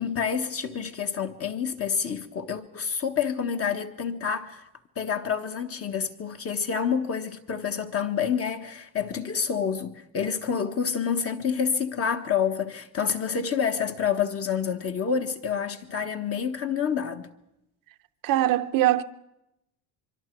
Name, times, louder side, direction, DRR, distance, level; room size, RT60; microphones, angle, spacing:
voice 1, 0.0-4.7 4.9-17.3, left 7 dB, 30° left, 1.5 m, -28 dB
voice 2, 18.2-19.0, right 14 dB, 50° right, 0.8 m, -22 dB
24.5 x 24.0 x 4.6 m
cardioid pair, 135°, 44 cm